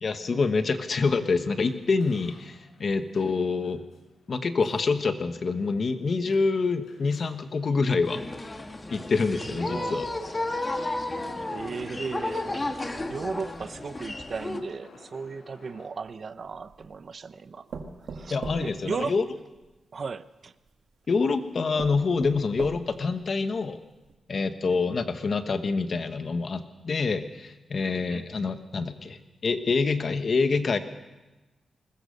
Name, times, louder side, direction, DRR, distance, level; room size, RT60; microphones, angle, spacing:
voice 1, 0.0-3.8 4.3-8.5 8.9-10.1 18.3-19.2 21.1-23.8 24.3-30.8, left 4 dB, 40° left, 1.2 m, -26 dB
sound 1, 1.6-15.9, left 3 dB, 85° left, 4.5 m, -54 dB
sound 2, 8.1-14.6, left 2 dB, 20° left, 1.4 m, -33 dB
voice 2, 9.4-10.0 11.5-12.7 13.1-17.7 18.1-19.2 19.9-20.5 27.8-28.3, right 5 dB, 40° right, 0.7 m, -36 dB
sound 3, 16.0-16.9 17.7-19.7 20.7-20.8 21.3-21.4 21.8-23.1 23.6-23.7 24.0-24.1, right 4 dB, 65° right, 2.1 m, -40 dB
21.5 x 20.5 x 6.7 m
wide cardioid pair, 160°, 0 cm